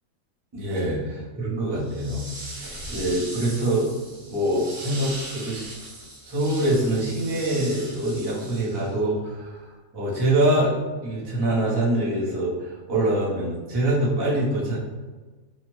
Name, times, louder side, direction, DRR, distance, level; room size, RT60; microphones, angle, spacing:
voice 1, 0.5-2.2 2.6-3.9 4.3-5.6 6.2-9.6 9.9-10.7 11.0-14.8, right 1 dB, 25° right, -7 dB, 0.6 m, -24 dB
sound 1, 1.8-9.0, right 1 dB, 75° right, 1.6 m, -39 dB
3.2 x 2.1 x 3.0 m, 1.3 s
omnidirectional pair, 1.5 m